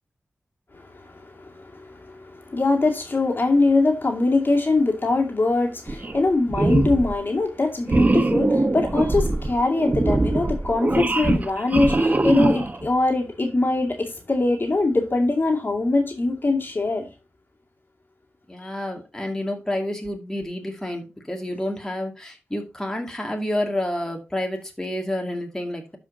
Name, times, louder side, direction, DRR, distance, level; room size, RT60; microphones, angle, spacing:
voice 1, 0.7-17.1 18.6-18.7, left 2 dB, 45° left, 2.3 m, -22 dB
sound 1, 5.9-6.2 6.5-7.1 7.9-12.9, right 2 dB, 35° right, 1.0 m, -22 dB
voice 2, 18.5-26.0, left 1 dB, 10° left, 2.2 m, -29 dB
12.5 x 5.2 x 2.8 m
wide cardioid pair, 70°, 5 cm